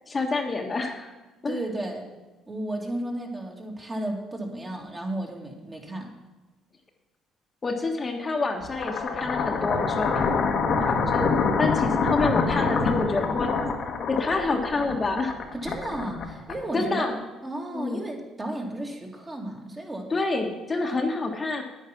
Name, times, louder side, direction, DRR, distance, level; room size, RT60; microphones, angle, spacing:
voice 1, 0.1-1.1 1.4-1.5 7.6-11.3 11.6-13.5 14.1-15.4 16.7-17.2 17.7-18.0 20.1-21.6, left 3 dB, 30° left, 2 dB, 1.5 m, -28 dB
voice 2, 1.4-2.1 2.5-6.1 15.5-17.2 17.4-20.1 20.9-21.0, right 1 dB, 20° right, 1 dB, 2.3 m, -33 dB
sound 1, 8.6-16.9, left 4 dB, 55° left, 1.4 m, -26 dB
9.6 x 9.2 x 5.9 m, 1.2 s
cardioid pair, 85°, 0 cm